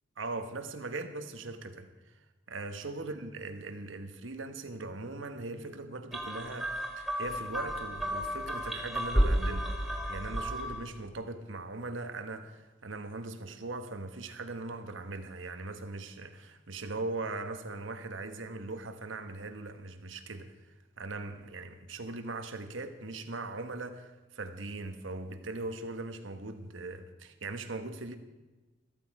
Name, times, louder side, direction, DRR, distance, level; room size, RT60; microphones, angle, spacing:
voice 1, 0.2-28.2, right 2 dB, 75° right, 8 dB, 1.2 m, -40 dB
sound 1, 6.1-10.9, equal, ahead, 1.4 m, -32 dB
14.0 x 13.0 x 4.8 m, 1.2 s
head